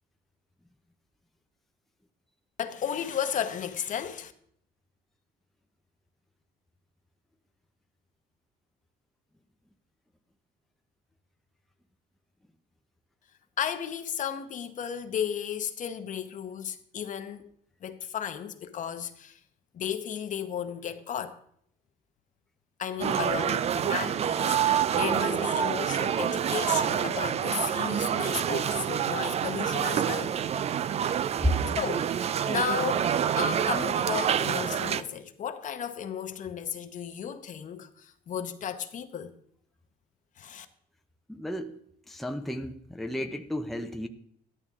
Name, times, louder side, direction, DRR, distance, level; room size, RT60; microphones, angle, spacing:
voice 1, 2.6-4.3 13.6-17.5 17.8-19.4 19.7-21.4 22.8-30.4 31.7-33.1 33.4-39.4 40.4-40.7, left 8 dB, 50° left, 1.0 m, -34 dB
sound 1, 23.0-35.0, right 9 dB, 40° right, 0.4 m, -27 dB
voice 2, 41.3-41.8 42.1-44.1, equal, ahead, 0.7 m, -31 dB
13.0 x 11.0 x 3.7 m
cardioid pair, 110°, 17 cm